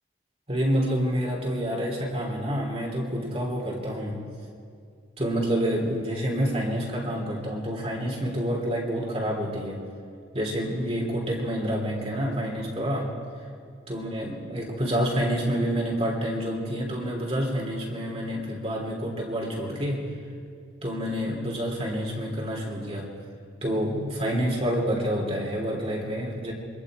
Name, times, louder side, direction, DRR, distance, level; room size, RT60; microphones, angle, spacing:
voice 1, 0.5-4.2 5.2-9.8 10.3-13.1 13.9-20.1 20.8-23.1 23.6-26.5, equal, 30° right, -1 dB, 3.0 m, -28 dB
26.5 x 24.0 x 4.9 m, 2.3 s
head